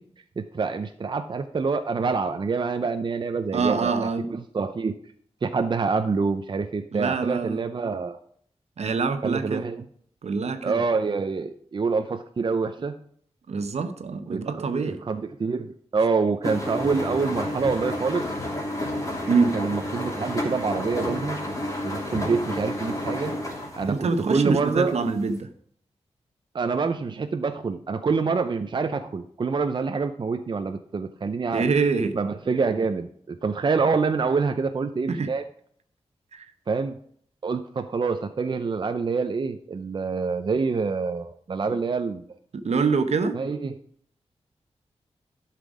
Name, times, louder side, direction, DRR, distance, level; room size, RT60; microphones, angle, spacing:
voice 1, 0.4-3.9 4.3-4.9 5.4-8.2 9.2-9.8 10.6-12.9 14.3-18.3 19.5-21.4 21.8-23.3 23.8-24.9 26.5-31.6 32.1-35.4 36.7-37.0 37.4-42.2 43.3-43.7, right 4 dB, 45° right, 8 dB, 0.5 m, -26 dB
voice 2, 3.5-4.3 6.9-7.6 8.8-9.7 10.2-10.8 13.5-15.0 19.3-19.5 23.9-25.5 31.5-32.2 35.1-35.3 36.3-36.5 42.5-43.4, right 4 dB, 75° right, 9 dB, 0.9 m, -25 dB
sound 1, 16.4-24.1 24.4-24.9 25.3-25.4, left 1 dB, 30° left, 2.8 m, -30 dB
11.5 x 5.9 x 4.9 m, 0.63 s
wide cardioid pair, 110°, 11 cm